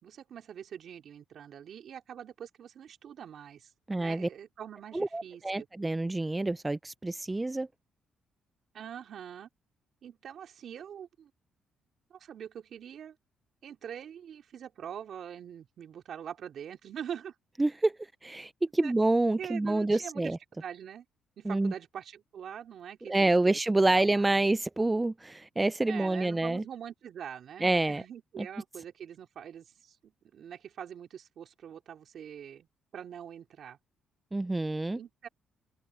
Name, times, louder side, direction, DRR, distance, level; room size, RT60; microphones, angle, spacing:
voice 1, 0.0-3.7 4.0-5.7 8.7-9.5 10.0-11.3 12.1-13.2 13.6-17.3 18.8-18.9 19.4-21.0 21.4-24.4 25.9-32.7 32.9-33.8 34.9-35.3, right 9 dB, 65° right, 3.4 m, -44 dB
voice 2, 3.9-4.3 4.9-7.7 17.6-17.9 18.2-20.4 21.5-21.7 23.1-26.6 27.6-28.0 34.3-35.0, right 2 dB, 15° right, 0.5 m, -27 dB
open air
cardioid pair, 90°, 0 cm